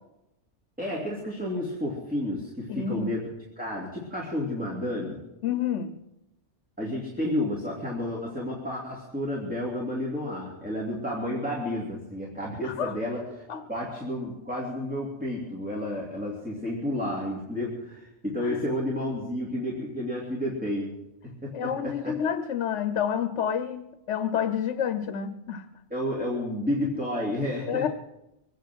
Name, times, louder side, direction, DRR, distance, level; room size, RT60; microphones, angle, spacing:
voice 1, 0.8-3.2 3.6-5.2 6.8-13.4 13.7-22.2 25.9-27.9, left 1 dB, 5° right, -4 dB, 2.9 m, -31 dB
voice 2, 2.7-3.1 5.4-6.0 12.6-12.9 13.5-13.6 18.4-18.6 21.5-25.7 27.7-27.9, left 8 dB, 75° left, 9 dB, 1.1 m, -29 dB
23.5 x 9.3 x 6.3 m, 0.93 s
omnidirectional pair, 1.2 m